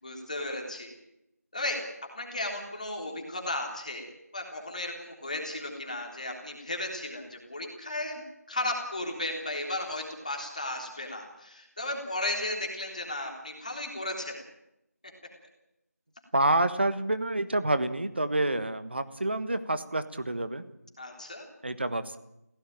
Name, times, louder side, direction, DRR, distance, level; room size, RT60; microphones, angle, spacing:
voice 1, 0.0-0.9 1.5-1.8 2.1-8.2 8.5-14.4 21.0-21.5, left 1 dB, 25° left, 2 dB, 3.5 m, -35 dB
voice 2, 16.3-20.6 21.6-22.2, right 1 dB, 40° right, 12 dB, 1.5 m, -28 dB
24.5 x 17.0 x 8.9 m, 0.85 s
figure-of-eight pair, 175°, 9 cm